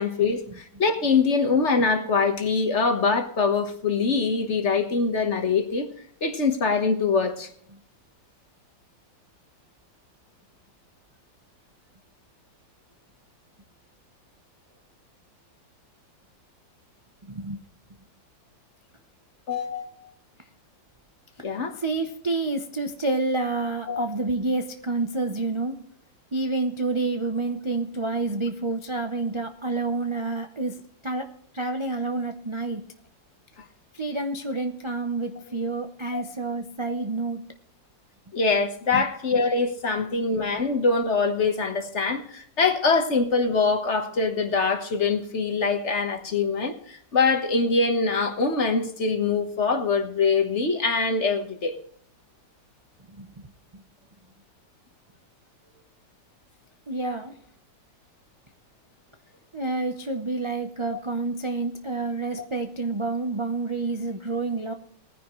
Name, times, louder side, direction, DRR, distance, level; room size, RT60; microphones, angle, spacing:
voice 1, 0.0-5.9 6.2-7.5 19.5-20.1 21.4-21.8 23.9-24.1 36.1-36.2 36.9-37.0 38.3-51.8 60.9-61.0, left 4 dB, 40° left, 6 dB, 1.5 m, -24 dB
voice 2, 17.3-17.6 21.4-21.5 21.8-25.8 26.3-32.8 33.9-37.4 38.9-39.0 53.1-53.5 56.9-57.4 59.5-64.7, right 3 dB, 35° right, 4 dB, 0.4 m, -29 dB
19.5 x 10.0 x 3.1 m, 0.64 s
omnidirectional pair, 2.0 m